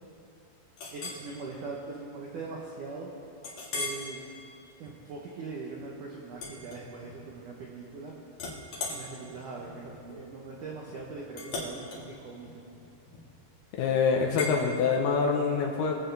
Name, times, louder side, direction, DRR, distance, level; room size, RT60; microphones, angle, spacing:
Chink clink, 0.8-1.2 1.8-2.0 2.4-2.5 3.4-4.1 4.6-4.9 6.3-7.3 7.6-8.0 8.3-13.5 14.4-14.6, left 3 dB, 50° left, 2.6 m, -39 dB
voice 1, 0.9-3.1 3.7-4.2 4.8-8.2 8.9-12.6, right 4 dB, 75° right, -3 dB, 1.8 m, -41 dB
voice 2, 13.8-16.0, left 5 dB, 75° left, 1 dB, 2.6 m, -25 dB
23.5 x 8.1 x 3.3 m, 2.5 s
omnidirectional pair, 5.1 m